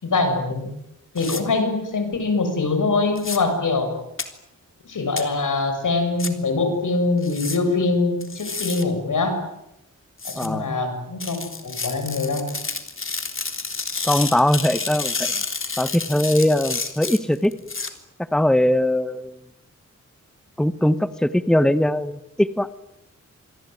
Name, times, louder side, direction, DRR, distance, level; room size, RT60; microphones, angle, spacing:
voice 1, 0.0-0.7 1.1-3.9 4.9-9.4 10.4-12.4, left 3 dB, 90° left, 7 dB, 7.4 m, -23 dB
sound 1, 1.2-1.4 3.1-3.4 4.2-4.3 5.2-5.3 6.2-6.3 7.2-7.6 8.2-8.8 10.2-10.5 11.2-17.9, left 4 dB, 45° left, 3.5 m, -30 dB
voice 2, 10.4-10.7 14.0-15.3 15.8-17.5 18.3-19.3 20.6-22.7, left 1 dB, ahead, 13 dB, 1.2 m, -20 dB
27.5 x 22.0 x 9.4 m, 0.86 s
wide cardioid pair, 110°, 30 cm